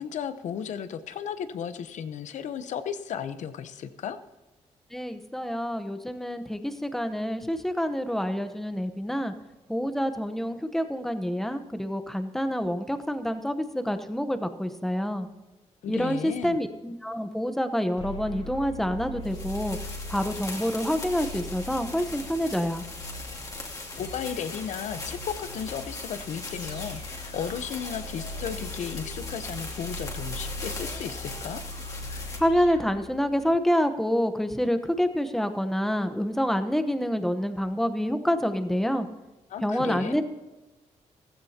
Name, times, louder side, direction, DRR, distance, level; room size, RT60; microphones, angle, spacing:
voice 1, 0.0-4.2 15.8-16.6 24.0-31.6 39.5-40.2, left 8 dB, 80° left, 11 dB, 0.9 m, -34 dB
voice 2, 4.9-9.3 9.7-15.3 15.9-19.8 20.1-22.8 32.4-39.1 39.6-40.2, equal, 5° left, 9 dB, 1.0 m, -27 dB
sound 1, 18.0-33.6, left 1 dB, 60° left, 4.0 m, -40 dB
sound 2, 19.2-32.4, left 3 dB, 30° left, 2.5 m, -40 dB
15.5 x 15.5 x 2.9 m, 1.1 s
wide cardioid pair, 140°, 12 cm